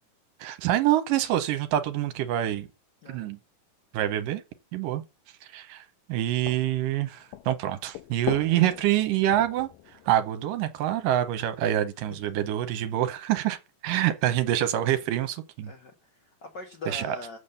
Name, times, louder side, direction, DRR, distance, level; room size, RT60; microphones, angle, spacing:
voice 1, 0.4-2.7 3.1-3.4 3.9-4.4 4.7-5.0 5.5-5.8 6.1-9.7 10.1-13.6 13.8-15.7 16.9-17.2, right 12 dB, 80° right, 2.4 m, -26 dB
sound 1, 6.5-11.3, left 15 dB, 80° left, 2.2 m, -41 dB
voice 2, 15.7-17.4, left 3 dB, 60° left, 1.1 m, -41 dB
7.3 x 6.5 x 6.7 m
omnidirectional pair, 4.1 m